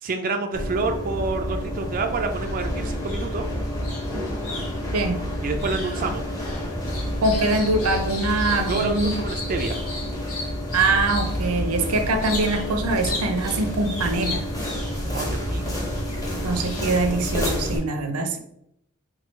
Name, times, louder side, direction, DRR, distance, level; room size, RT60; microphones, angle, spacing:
voice 1, 0.0-3.5 5.4-6.2 8.7-9.8 15.1-15.8 16.1-16.4, right 3 dB, 40° right, 4 dB, 0.4 m, -28 dB
sound 1, 0.5-17.8, equal, 15° left, 1.2 m, -29 dB
sound 2, 2.3-2.7 3.0-11.4 12.2-12.7 13.0-15.3 15.9-17.1, left 2 dB, 70° left, 1.3 m, -37 dB
voice 2, 7.2-9.1 10.7-14.5 16.4-18.4, right 2 dB, 85° right, 7 dB, 0.6 m, -23 dB
4.5 x 2.3 x 4.4 m, 0.76 s
head